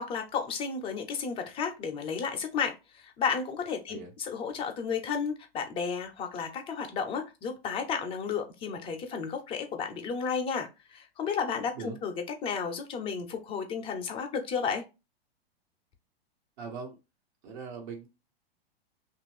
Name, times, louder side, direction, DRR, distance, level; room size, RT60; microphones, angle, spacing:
voice 1, 0.0-12.1 12.4-14.8, left 6 dB, 15° left, 0.6 m, -33 dB
voice 2, 16.6-17.0 17.4-18.1, right 5 dB, 50° right, 1.4 m, -40 dB
2.9 x 2.5 x 3.3 m
figure-of-eight pair, 105°, 31 cm